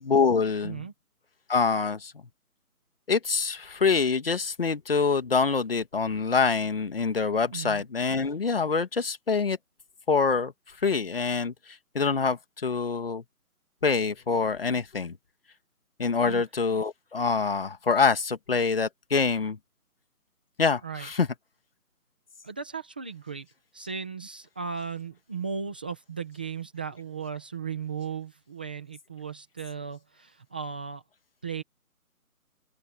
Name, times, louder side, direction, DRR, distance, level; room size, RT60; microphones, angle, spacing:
voice 1, 0.0-0.9 1.5-2.1 3.1-9.6 10.1-10.5 10.8-13.2 13.8-15.2 16.0-19.6 20.6-21.3, left 5 dB, 40° left, 2.2 m, -25 dB
voice 2, 7.5-7.8 16.2-16.4 20.8-21.1 22.4-23.5 23.7-31.0 31.4-31.6, right 6 dB, 5° right, 1.3 m, -36 dB
open air
figure-of-eight pair, 175°, 45 cm